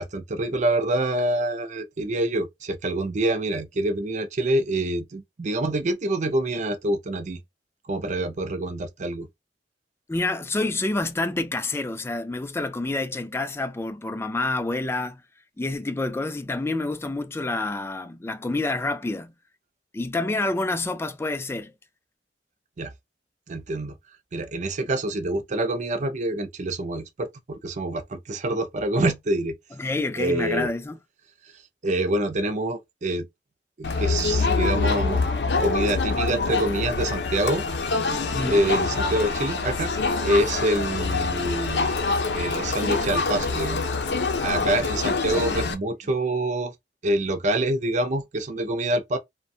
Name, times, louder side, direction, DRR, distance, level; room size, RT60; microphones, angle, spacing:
voice 1, 0.0-7.4 7.9-9.3 22.8-22.9 23.5-23.9 24.3-29.5 30.2-30.7 31.8-33.3 33.8-35.3 35.6-37.6 38.5-39.9 40.2-41.9 42.3-43.9 44.4-46.7 47.0-49.2, right 1 dB, 45° right, 0.5 m, -26 dB
voice 2, 10.1-15.2 15.6-19.3 19.9-21.7 29.8-31.0 38.3-38.7, left 2 dB, 15° left, 0.3 m, -28 dB
Crowd, 33.8-45.7, left 4 dB, 70° left, 0.6 m, -25 dB
2.5 x 2.1 x 2.6 m
head